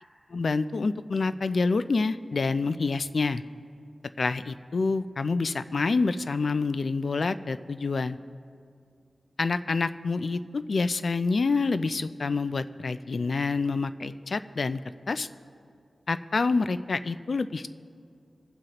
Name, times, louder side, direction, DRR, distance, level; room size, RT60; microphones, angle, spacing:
voice 1, 0.3-3.4 4.2-8.2 9.4-14.8 15.1-15.3 16.1-17.7, left 4 dB, 65° left, 13 dB, 0.3 m, -27 dB
21.5 x 7.7 x 2.9 m, 2.3 s
wide cardioid pair, 80°, 0 cm